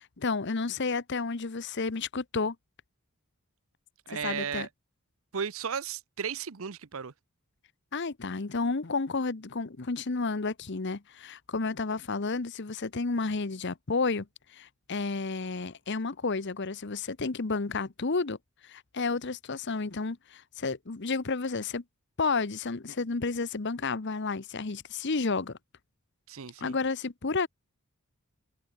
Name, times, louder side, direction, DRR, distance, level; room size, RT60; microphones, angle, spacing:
voice 1, 0.0-2.6 4.2-4.7 7.9-14.3 14.5-18.4 18.6-21.8 22.2-25.6 26.6-27.5, left 4 dB, 50° left, 0.9 m, -31 dB
voice 2, 4.1-4.7 5.3-7.1 26.3-26.8, right 7 dB, 65° right, 0.7 m, -35 dB
head